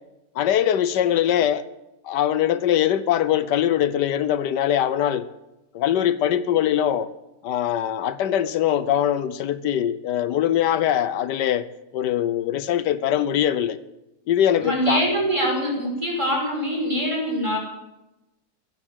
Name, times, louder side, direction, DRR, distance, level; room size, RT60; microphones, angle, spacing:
voice 1, 0.4-1.6 2.0-5.3 5.7-7.1 7.4-11.7 11.9-13.8 14.3-15.0, left 10 dB, 85° left, 15 dB, 1.4 m, -22 dB
voice 2, 14.6-17.6, equal, 15° right, -1 dB, 5.6 m, -24 dB
16.0 x 11.0 x 8.1 m, 0.95 s
omnidirectional pair, 1.8 m